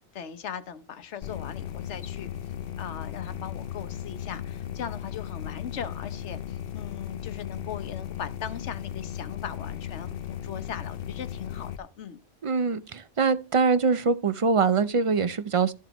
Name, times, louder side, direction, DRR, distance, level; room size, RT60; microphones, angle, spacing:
voice 1, 0.1-2.3 2.8-12.2, left 8 dB, 80° left, 1.2 m, -39 dB
sound 1, 1.2-11.8, left 10 dB, 60° left, 0.8 m, -36 dB
voice 2, 12.4-15.7, right 5 dB, 45° right, 0.4 m, -23 dB
13.0 x 7.4 x 3.0 m
omnidirectional pair, 1.2 m